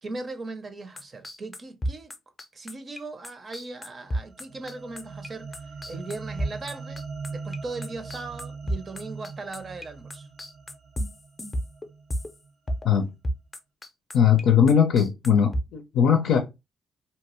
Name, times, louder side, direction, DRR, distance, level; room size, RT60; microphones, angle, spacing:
voice 1, 0.0-2.1 2.5-5.6 5.9-7.0 7.3-10.3, right 3 dB, 40° right, 0.6 m, -38 dB
sound 1, 1.0-9.9 10.1-12.4 12.7-13.0 13.2-14.4 14.7-15.7, equal, 25° left, 0.6 m, -32 dB
sound 2, 4.0-12.5, right 4 dB, 70° right, 0.8 m, -41 dB
voice 2, 14.1-16.4, left 8 dB, 75° left, 0.5 m, -20 dB
2.8 x 2.3 x 2.9 m
cardioid pair, 90°, 0 cm